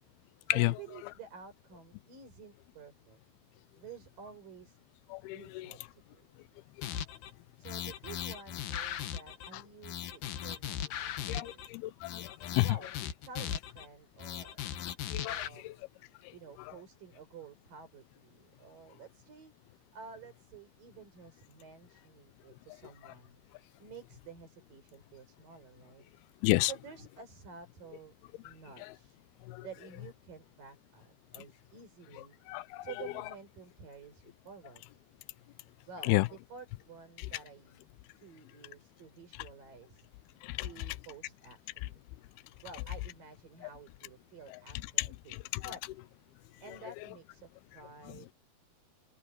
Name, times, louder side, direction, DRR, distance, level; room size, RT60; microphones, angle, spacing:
voice 1, 0.5-3.2 3.8-4.8 5.3-6.3 7.6-11.9 12.6-12.9 13.2-14.6 15.3-15.7 16.3-19.6 19.9-23.4 23.8-26.1 26.6-29.2 29.6-32.4 32.8-34.8 35.9-37.8 38.2-40.1 40.6-42.0 42.6-45.8 46.6-47.5 47.7-48.3, right 5 dB, 60° right, 7.0 m, -51 dB
voice 2, 5.1-5.7 9.5-9.6 11.3-12.7 15.1-15.7 26.4-26.7 29.5-29.6 32.5-32.9 36.1-36.3 40.4-40.7 45.0-45.6, left 20 dB, 85° left, 2.5 m, -31 dB
sound 1, 6.8-7.3 7.6-9.5 9.8-11.7 12.0-13.9 14.2-15.5, left 10 dB, 65° left, 2.9 m, -38 dB
open air
omnidirectional pair, 4.5 m